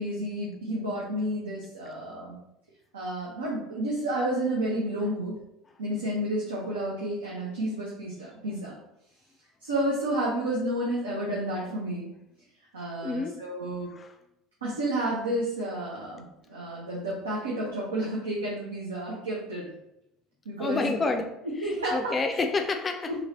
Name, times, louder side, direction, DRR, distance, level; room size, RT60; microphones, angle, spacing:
voice 1, 0.0-2.4 2.9-5.4 5.8-8.8 9.6-12.1 12.7-13.9 14.6-16.2 16.5-19.6 20.4-20.9 21.4-22.1 23.1-23.2, right 1 dB, 85° right, -5 dB, 0.7 m, -31 dB
voice 2, 13.0-13.4 13.9-14.1 20.6-21.4 21.6-23.1, left 3 dB, 30° left, 6 dB, 0.3 m, -29 dB
3.1 x 2.9 x 2.7 m, 0.82 s
hypercardioid pair, 70°, 0 cm